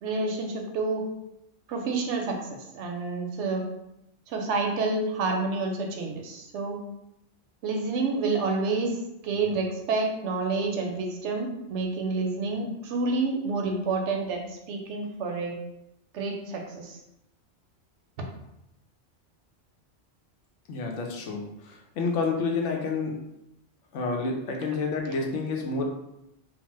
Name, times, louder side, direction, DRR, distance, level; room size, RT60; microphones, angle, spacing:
voice 1, 0.0-1.1 1.7-3.6 4.3-6.8 7.6-9.0 9.2-15.5 16.1-17.0, right 3 dB, 80° right, 2 dB, 0.9 m, -29 dB
voice 2, 20.7-21.5 22.0-23.1 23.9-25.9, left 4 dB, 85° left, 1 dB, 0.9 m, -28 dB
2.8 x 2.0 x 3.0 m, 0.84 s
omnidirectional pair, 1.2 m